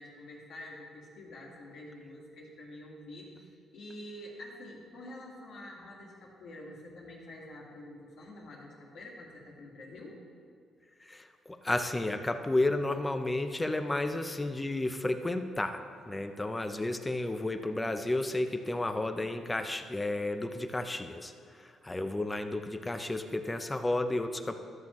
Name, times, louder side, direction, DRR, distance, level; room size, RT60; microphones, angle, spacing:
voice 1, 0.0-10.2, left 1 dB, 70° left, -3 dB, 2.0 m, -47 dB
voice 2, 11.1-15.8 16.1-24.5, left 2 dB, 15° left, 7 dB, 0.6 m, -32 dB
13.0 x 6.9 x 3.1 m, 2.3 s
cardioid pair, 90°, 0 cm